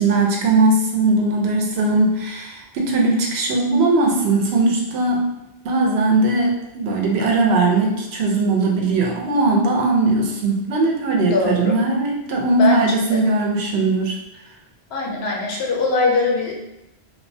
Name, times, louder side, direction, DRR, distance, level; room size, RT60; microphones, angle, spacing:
voice 1, 0.0-5.3 5.6-14.2, right 2 dB, 80° right, -1 dB, 0.8 m, -19 dB
voice 2, 11.2-11.8 12.6-12.8 13.1-13.2 14.9-16.6, left 3 dB, 80° left, -1 dB, 0.8 m, -21 dB
2.3 x 2.1 x 2.6 m, 0.91 s
omnidirectional pair, 1.0 m